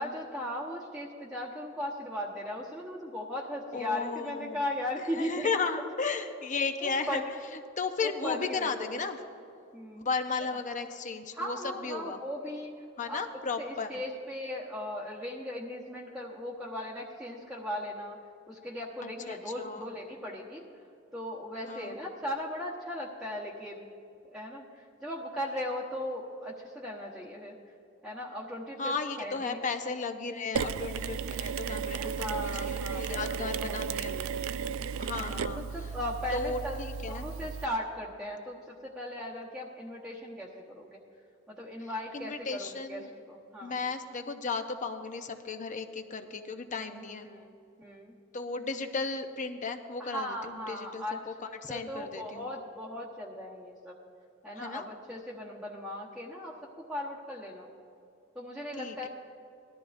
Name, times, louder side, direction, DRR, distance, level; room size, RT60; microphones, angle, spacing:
voice 1, 0.0-5.5 6.8-7.3 8.0-8.8 9.7-10.1 11.3-12.7 13.1-13.2 13.6-18.2 18.5-20.6 21.1-23.9 24.3-27.5 28.0-29.6 32.0-34.3 35.1-36.8 37.1-41.0 41.5-43.7 46.7-47.5 47.8-48.2 50.0-54.0 54.4-57.7 58.3-59.1, left 1 dB, ahead, -7 dB, 1.1 m, -38 dB
voice 2, 3.7-4.6 5.0-7.2 7.5-9.2 9.9-11.6 11.8-12.2 13.0-14.0 19.0-19.9 21.7-22.0 28.8-34.1 35.0-35.6 36.3-37.2 42.1-43.1 43.6-47.3 48.3-51.3 51.6-52.5 54.5-54.8 58.8-59.1, left 4 dB, 40° left, 7 dB, 0.7 m, -35 dB
Mechanisms, 30.5-37.7, right 6 dB, 80° right, 0.4 m, -34 dB
19.0 x 13.0 x 2.6 m, 2.6 s
head